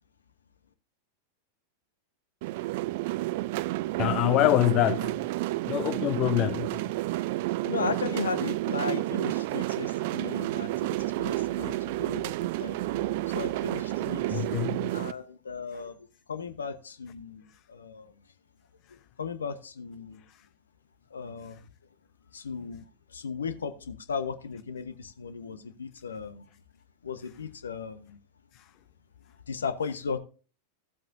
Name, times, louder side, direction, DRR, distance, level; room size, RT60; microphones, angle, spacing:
sound 1, 2.4-15.1, right 18 dB, 50° right, 0.4 m, -30 dB
voice 1, 4.0-5.1 5.7-6.8 11.6-11.7 14.3-15.0 28.5-28.6, left 16 dB, 40° left, 0.4 m, -25 dB
voice 2, 7.6-12.9 13.3-14.4 14.9-15.9 16.3-18.1 18.9-20.2 21.1-21.7 22.3-22.8 23.1-26.5 27.0-28.2 29.5-30.2, left 5 dB, 70° left, 1.0 m, -36 dB
15.5 x 7.6 x 2.7 m
figure-of-eight pair, 90°, 0 cm